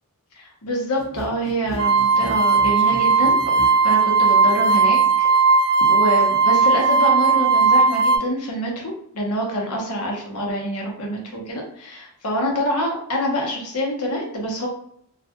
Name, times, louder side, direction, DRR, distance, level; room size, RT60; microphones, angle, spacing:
voice 1, 0.4-5.3 5.9-14.7, equal, 75° left, 0 dB, 0.8 m, -26 dB
sound 1, 1.0-3.8, right 1 dB, 5° right, 0.8 m, -35 dB
sound 2, 1.8-8.2, right 4 dB, 75° right, 0.3 m, -17 dB
2.3 x 2.2 x 2.8 m, 0.67 s
head